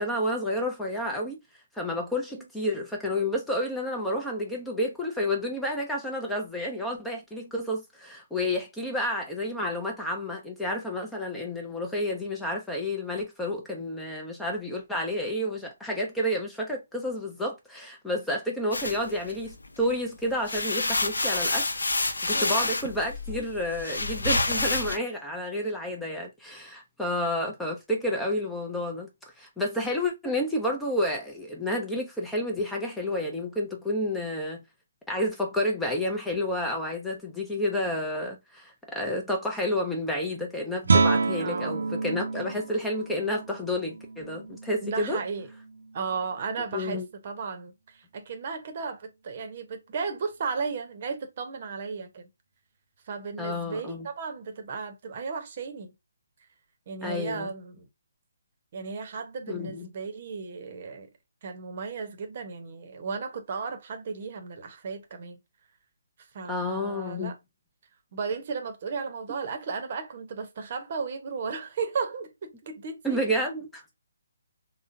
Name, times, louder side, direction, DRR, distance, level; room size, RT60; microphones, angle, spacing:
voice 1, 0.0-1.4 1.7-21.6 22.0-29.1 29.4-34.6 35.1-45.2 46.7-47.0 53.4-54.1 57.0-57.5 59.5-59.9 66.5-67.3 73.0-73.8, left 1 dB, 5° left, 0.5 m, -30 dB
sound 1, 18.7-19.9 20.3-25.0, left 2 dB, 80° left, 0.5 m, -28 dB
voice 2, 22.3-22.7 41.4-41.8 44.8-45.5 45.9-52.3 53.1-55.9 56.9-57.9 58.7-61.1 61.4-65.4 66.3-67.3 68.1-73.2, right 5 dB, 45° right, 0.8 m, -35 dB
Guitar, 40.8-46.4, right 4 dB, 70° right, 0.4 m, -29 dB
3.7 x 2.1 x 2.6 m
figure-of-eight pair, 145°, 0 cm